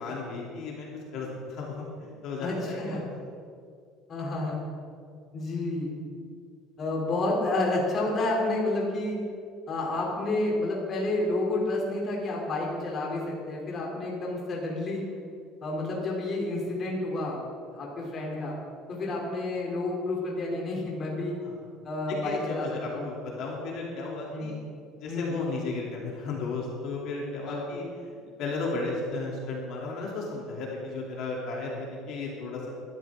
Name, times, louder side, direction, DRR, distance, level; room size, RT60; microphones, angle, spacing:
voice 1, 0.0-3.1 21.4-21.6 22.2-24.6 25.0-32.7, left 3 dB, 50° left, -3 dB, 2.9 m, -34 dB
voice 2, 2.4-3.0 4.1-4.6 5.3-5.9 6.8-9.2 9.7-15.0 15.6-17.4 17.7-18.6 18.9-21.4 21.8-23.1 24.3-24.5 25.1-25.3 27.5-27.7, left 2 dB, 30° left, -3 dB, 3.1 m, -30 dB
20.5 x 12.5 x 3.7 m, 2.2 s
cardioid pair, 165°, 0 cm